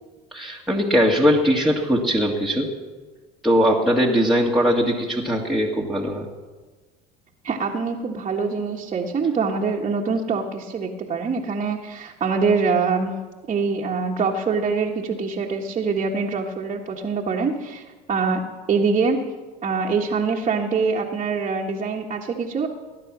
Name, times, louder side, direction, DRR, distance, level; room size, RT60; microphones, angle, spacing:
voice 1, 0.3-2.7 3.4-6.3, equal, ahead, -4 dB, 2.0 m, -20 dB
voice 2, 7.4-13.1 13.5-18.4 18.7-19.2 19.6-22.7, right 5 dB, 30° right, -2 dB, 1.6 m, -24 dB
19.0 x 9.9 x 6.2 m, 1.3 s
supercardioid pair, 90°, 21 cm